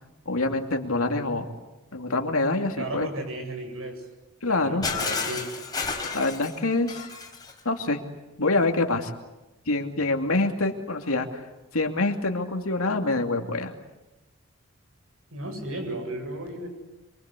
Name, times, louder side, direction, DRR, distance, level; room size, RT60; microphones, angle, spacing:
voice 1, 0.3-1.5 1.9-3.1 4.4-4.8 6.1-7.1 7.6-8.0 8.4-9.1 9.7-11.4 11.7-13.7, left 2 dB, 85° left, 4 dB, 2.6 m, -25 dB
voice 2, 2.8-4.0 4.5-5.5 15.3-16.7, right 1 dB, 75° right, 4 dB, 7.7 m, -34 dB
Shatter, 4.8-7.6, left 4 dB, 20° left, 4.1 m, -31 dB
26.5 x 24.5 x 8.4 m, 1.0 s
head